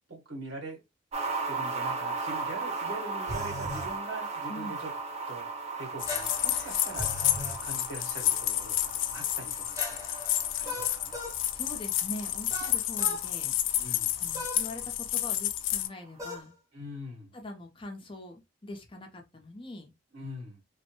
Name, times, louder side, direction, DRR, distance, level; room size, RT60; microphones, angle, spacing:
voice 1, 0.1-0.8 1.5-4.9 5.3-5.4 5.8-7.2 7.6-10.0 10.5-11.2 13.8-14.2 16.7-17.3 20.1-20.6, right 1 dB, 85° right, 1.8 m, -42 dB
sound 1, 1.1-15.6 15.8-15.9, right 4 dB, 35° right, 0.6 m, -38 dB
sound 2, 3.3-3.9 6.1-7.6 9.7-11.4 12.5-13.2 14.3-14.6 16.2-16.5, equal, 20° right, 0.9 m, -38 dB
voice 2, 4.5-4.8 11.5-16.5 17.3-19.9, left 1 dB, 30° left, 0.7 m, -43 dB
sound 3, 6.0-15.9, left 13 dB, 80° left, 0.4 m, -30 dB
3.1 x 2.1 x 2.9 m
head